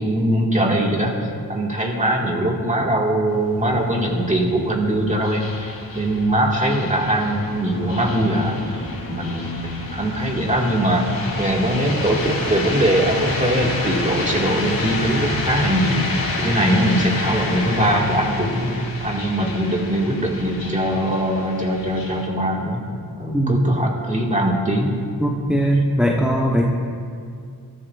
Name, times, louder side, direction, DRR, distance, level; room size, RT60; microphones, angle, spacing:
voice 1, 0.0-22.9 23.2-25.0 25.5-25.6, right 1 dB, 20° right, -2 dB, 2.0 m, -21 dB
sound 1, 3.3-22.3, left 2 dB, 60° left, 2.3 m, -29 dB
voice 2, 25.2-26.7, right 1 dB, 5° right, -2 dB, 1.0 m, -19 dB
22.5 x 13.5 x 2.5 m, 2.3 s
wide cardioid pair, 120°, 39 cm